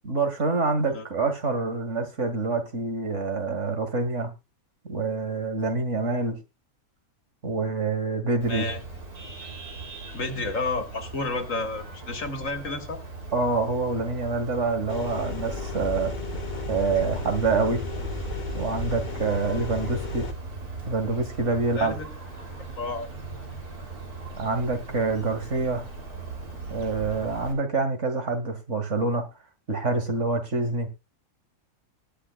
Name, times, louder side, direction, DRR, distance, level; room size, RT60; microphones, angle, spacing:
voice 1, 0.0-4.3 4.8-6.4 7.4-8.7 13.3-16.1 16.7-17.8 18.5-20.2 20.9-21.9 24.4-25.9 26.7-29.2 29.7-30.9, right 3 dB, 55° right, 7 dB, 2.3 m, -26 dB
Vehicle horn car horn honking, 8.4-27.5, right 3 dB, 80° right, 4.0 m, -38 dB
voice 2, 8.5-8.8 10.1-13.0 21.7-22.1 22.8-23.1, left 3 dB, 60° left, 7 dB, 2.0 m, -31 dB
sound 1, 14.9-20.3, left 4 dB, 35° left, 1.2 m, -34 dB
20.0 x 8.4 x 2.4 m, 0.24 s
omnidirectional pair, 1.6 m